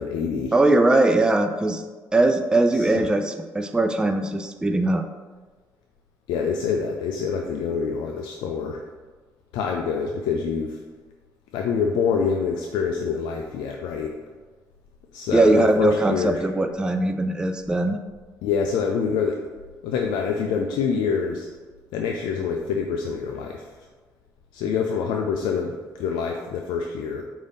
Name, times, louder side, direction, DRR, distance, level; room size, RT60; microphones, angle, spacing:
voice 1, 0.0-0.5 2.7-3.1 6.3-8.8 9.5-10.8 11.5-14.1 15.1-16.4 18.4-19.4 19.8-21.5 21.9-23.7 24.5-27.2, left 6 dB, 85° left, 2 dB, 0.3 m, -26 dB
voice 2, 0.5-1.8 2.1-5.0 15.3-18.0, right 2 dB, 10° right, 6 dB, 0.3 m, -20 dB
5.2 x 2.7 x 3.4 m, 1.4 s
cardioid pair, 80°, 7 cm